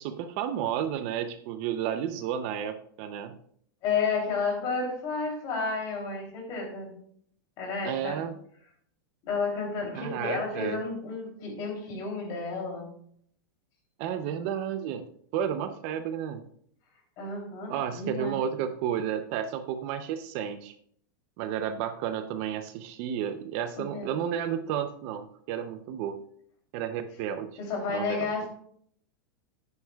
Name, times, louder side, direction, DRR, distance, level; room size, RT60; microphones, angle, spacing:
voice 1, 0.0-3.3 7.8-8.3 9.9-10.8 14.0-16.4 17.7-20.7 21.4-26.2 26.7-27.6 27.9-28.3, right 9 dB, 40° right, 9 dB, 0.6 m, -32 dB
voice 2, 3.8-6.9 7.6-8.2 9.2-12.9 17.2-18.4 23.8-24.1 27.6-28.5, left 4 dB, 35° left, 1 dB, 3.2 m, -31 dB
11.0 x 9.6 x 2.3 m, 0.63 s
supercardioid pair, 165°, 11 cm